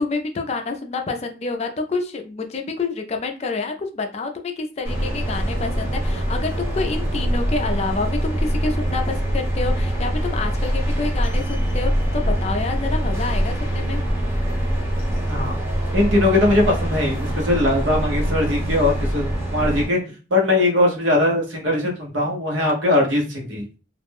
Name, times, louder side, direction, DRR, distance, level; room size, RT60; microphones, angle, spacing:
voice 1, 0.0-14.0, left 3 dB, 35° left, 5 dB, 0.4 m, -28 dB
sound 1, 4.9-19.9, equal, 15° right, 0.8 m, -23 dB
voice 2, 15.9-20.0 20.3-23.6, left 2 dB, 80° right, 0 dB, 0.9 m, -20 dB
2.4 x 2.1 x 3.4 m, 0.33 s
head